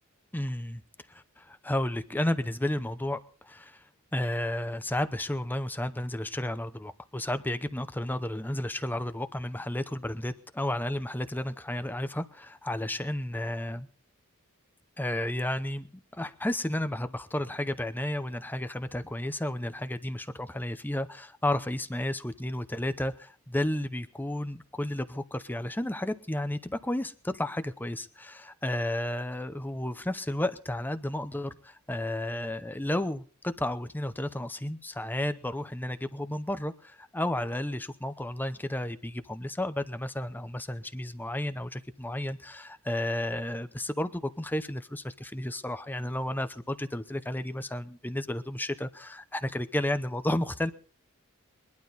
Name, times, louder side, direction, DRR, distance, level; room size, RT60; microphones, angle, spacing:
voice 1, 0.3-0.8 1.1-13.9 15.0-50.7, left 1 dB, 10° left, 11 dB, 0.7 m, -32 dB
21.5 x 12.0 x 4.1 m, 0.42 s
head